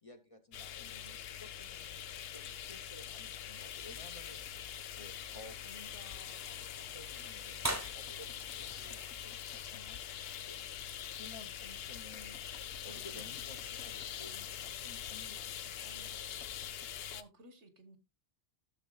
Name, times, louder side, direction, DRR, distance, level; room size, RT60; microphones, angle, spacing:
voice 1, 0.0-4.4 5.0-10.6 11.1-16.2, left 2 dB, 30° left, 6 dB, 0.9 m, -55 dB
sound 1, 0.5-17.2, left 10 dB, 65° left, 0.8 m, -44 dB
voice 2, 0.8-1.2 12.8-13.4 15.8-16.2 16.8-18.0, right 2 dB, 80° right, 10 dB, 1.6 m, -57 dB
sound 2, 3.4-9.9, right 1 dB, 15° right, 0.9 m, -46 dB
Knock, 7.9-10.0 12.1-14.2 16.4-16.9, left 6 dB, 80° left, 1.2 m, -60 dB
14.0 x 6.6 x 2.3 m, 0.24 s
omnidirectional pair, 1.2 m